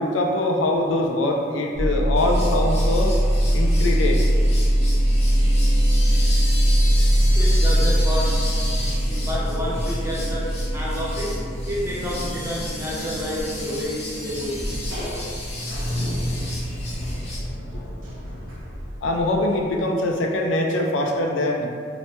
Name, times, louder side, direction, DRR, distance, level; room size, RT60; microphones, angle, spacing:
voice 1, 0.0-3.2 3.5-4.2 19.0-21.7, left 1 dB, 80° left, 2 dB, 0.4 m, -23 dB
sound 1, 1.8-19.8, equal, 90° right, 0.8 m, -22 dB
sound 2, 2.2-17.4, left 2 dB, 35° left, 0.6 m, -35 dB
voice 2, 7.3-11.4 11.7-14.6, equal, 15° right, -6 dB, 0.6 m, -30 dB
3.0 x 2.1 x 3.0 m, 2.2 s
head